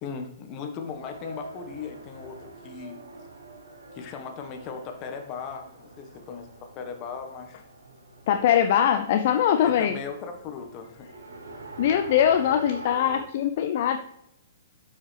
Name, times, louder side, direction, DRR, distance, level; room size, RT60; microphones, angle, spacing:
voice 1, 0.0-3.0 3.9-7.6 9.6-11.1, left 6 dB, 35° left, 4 dB, 1.4 m, -38 dB
Race car auto racing, 0.8-13.2, right 3 dB, 70° right, 1.2 m, -44 dB
voice 2, 8.3-10.0 11.8-14.0, left 9 dB, 50° left, 7 dB, 0.5 m, -22 dB
12.5 x 5.6 x 3.4 m, 0.79 s
figure-of-eight pair, 115°, 0 cm